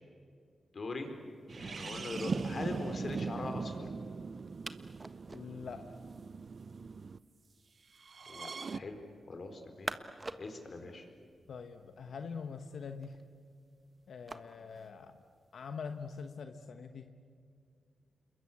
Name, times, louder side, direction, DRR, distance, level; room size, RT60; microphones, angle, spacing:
voice 1, 0.7-1.1 1.5-3.9 8.3-9.0 9.3-9.9 10.4-11.0, left 3 dB, 55° left, 5 dB, 4.4 m, -41 dB
sound 1, 1.0-16.4, right 2 dB, 30° right, 1.4 m, -51 dB
sound 2, 1.5-7.2 8.0-8.8, right 4 dB, 55° right, 0.7 m, -40 dB
voice 2, 5.3-5.9 11.5-13.2 14.1-15.2 15.5-17.1, left 5 dB, 75° left, 7 dB, 1.2 m, -44 dB
28.0 x 22.0 x 8.6 m, 2.3 s
cardioid pair, 60°, 0 cm